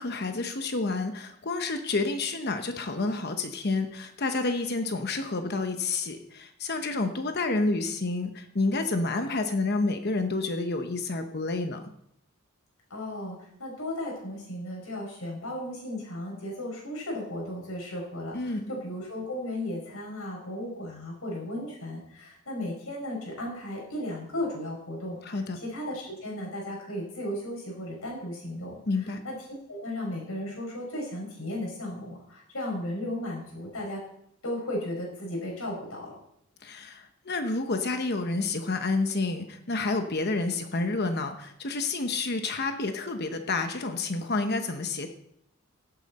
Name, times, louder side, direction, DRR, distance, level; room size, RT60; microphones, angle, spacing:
voice 1, 0.0-11.8 18.3-18.6 25.2-25.6 28.9-29.2 36.6-45.1, left 3 dB, 50° left, 6 dB, 1.0 m, -29 dB
voice 2, 12.9-28.8 29.2-29.3 29.7-34.0 34.4-36.1, left 1 dB, 90° left, -1 dB, 5.7 m, -35 dB
16.5 x 9.0 x 4.2 m, 0.73 s
head